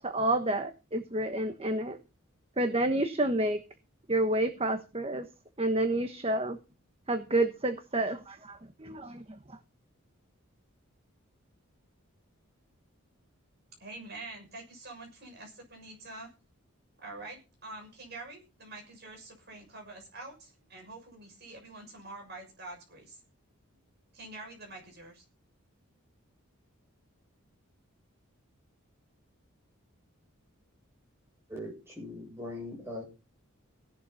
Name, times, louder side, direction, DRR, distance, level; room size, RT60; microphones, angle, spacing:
voice 1, 0.0-2.0 2.6-3.6 4.1-5.2 5.6-6.6 7.1-9.2, right 1 dB, 25° right, 7 dB, 1.2 m, -29 dB
voice 2, 13.8-16.3 17.0-23.2 24.1-25.2, right 2 dB, 50° right, 2 dB, 6.7 m, -46 dB
voice 3, 31.5-33.0, left 1 dB, 10° right, -1 dB, 7.8 m, -40 dB
17.0 x 11.5 x 4.2 m, 0.30 s
head